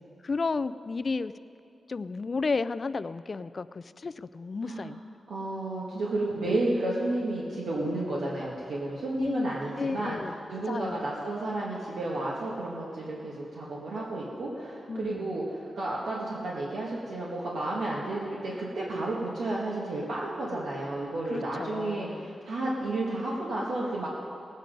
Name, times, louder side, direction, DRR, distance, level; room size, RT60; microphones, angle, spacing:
voice 1, 0.2-1.3 1.9-5.0 6.4-6.6 9.2-9.4 9.8-11.0 14.9-15.3 21.3-22.3, left 4 dB, 40° left, 14 dB, 0.3 m, -32 dB
voice 2, 4.6-5.0 5.3-24.1, right 2 dB, 85° right, -5 dB, 1.6 m, -32 dB
18.5 x 8.3 x 5.2 m, 2.6 s
wide cardioid pair, 135°, 0 cm